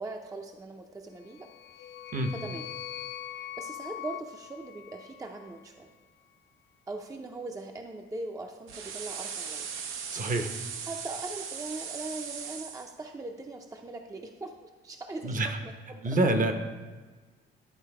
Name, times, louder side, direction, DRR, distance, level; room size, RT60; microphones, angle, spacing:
voice 1, 0.0-1.5 1.8-1.9 2.3-2.6 3.3-5.9 6.9-9.7 10.9-16.0, right 2 dB, 15° right, 3 dB, 0.6 m, -40 dB
sound 1, 1.2-5.6, left 12 dB, 60° left, 0.4 m, -42 dB
sound 2, 8.7-12.9, right 6 dB, 80° right, 0.7 m, -38 dB
voice 2, 10.1-10.5 15.2-15.6 16.0-16.5, right 2 dB, 40° right, 7 dB, 0.8 m, -26 dB
11.0 x 3.9 x 4.7 m, 1.3 s
cardioid pair, 90°, 20 cm